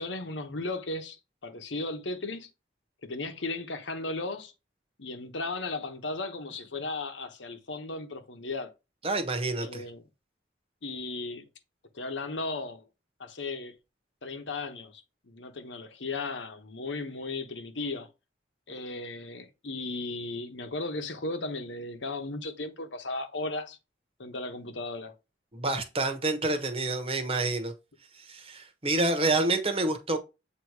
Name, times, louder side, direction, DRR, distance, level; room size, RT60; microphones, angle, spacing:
voice 1, 0.0-2.5 3.0-4.5 5.0-8.7 9.6-10.0 10.8-11.4 11.9-12.9 13.2-13.7 14.2-18.1 18.7-23.8 24.2-25.1, left 2 dB, 80° left, 1.1 m, -36 dB
voice 2, 9.0-9.8 25.5-27.7 28.1-30.2, right 2 dB, 30° right, 1.1 m, -28 dB
8.0 x 3.0 x 4.7 m
head